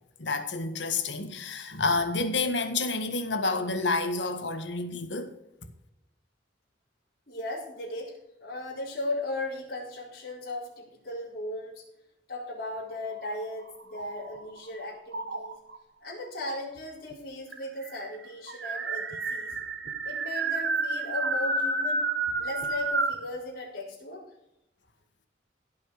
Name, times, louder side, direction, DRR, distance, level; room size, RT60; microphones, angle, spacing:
voice 1, 0.2-5.3, left 3 dB, 70° left, 1.7 m, -29 dB
voice 2, 7.3-11.8 12.3-15.6 16.0-19.5 20.0-22.1 22.4-24.2, left 2 dB, 50° left, 4.5 m, -37 dB
sound 1, 13.1-14.6 15.1-15.8 16.8-16.9 17.1-17.2 17.5-23.3, right 3 dB, 65° right, 1.3 m, -30 dB
16.5 x 5.6 x 6.7 m
head